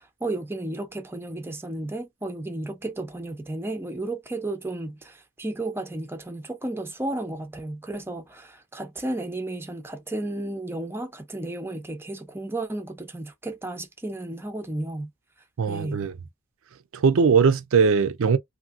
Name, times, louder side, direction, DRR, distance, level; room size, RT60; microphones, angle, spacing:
voice 1, 0.0-15.1 15.7-16.1, right 2 dB, 10° right, 0.6 m, -33 dB
voice 2, 15.6-16.1 16.9-18.4, right 5 dB, 70° right, 0.5 m, -20 dB
2.7 x 2.7 x 2.4 m
head